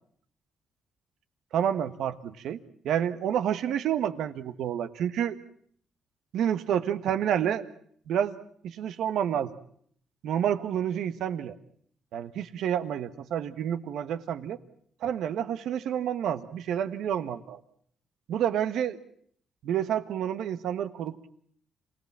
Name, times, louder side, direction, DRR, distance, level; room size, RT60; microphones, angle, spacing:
voice 1, 1.5-2.6 2.8-5.4 6.3-7.6 8.1-8.4 8.6-9.5 10.2-11.5 12.1-14.6 15.0-17.6 18.3-19.0 19.6-21.3, right 9 dB, 80° right, 11 dB, 1.4 m, -29 dB
27.0 x 18.5 x 7.5 m, 0.63 s
cardioid pair, 85°, 0 cm